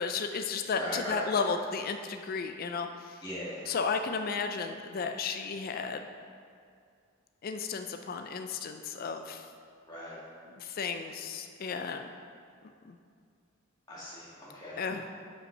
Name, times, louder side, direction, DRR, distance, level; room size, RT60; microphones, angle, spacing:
voice 1, 0.0-3.2 3.7-6.1 7.4-9.5 10.5-12.1 12.8-13.0 14.8-15.1, left 5 dB, 40° left, 6 dB, 0.3 m, -33 dB
voice 2, 0.7-1.3 3.2-3.6 9.9-10.2 13.9-15.1, equal, 20° left, -10 dB, 2.0 m, -39 dB
7.7 x 5.3 x 5.4 m, 2.2 s
head